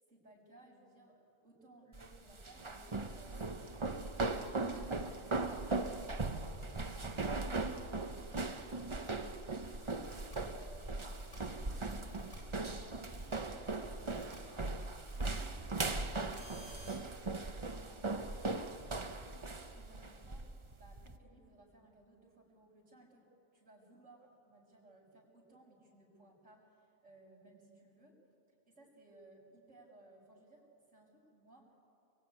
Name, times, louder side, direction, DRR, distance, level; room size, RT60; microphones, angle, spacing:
voice 1, 0.1-17.1 17.4-20.5 20.8-28.2 28.7-31.7, right 2 dB, 85° right, -9 dB, 5.7 m, -61 dB
sound 1, 1.9-21.2, right 3 dB, 25° right, 0.9 m, -39 dB
sound 2, 10.0-10.4 11.0-11.4 12.0-12.4 13.0-13.4 14.0-14.4 15.0-15.4 16.0-16.9, equal, 75° left, 8.6 m, -56 dB
24.0 x 23.0 x 9.6 m, 3.0 s
omnidirectional pair, 1.3 m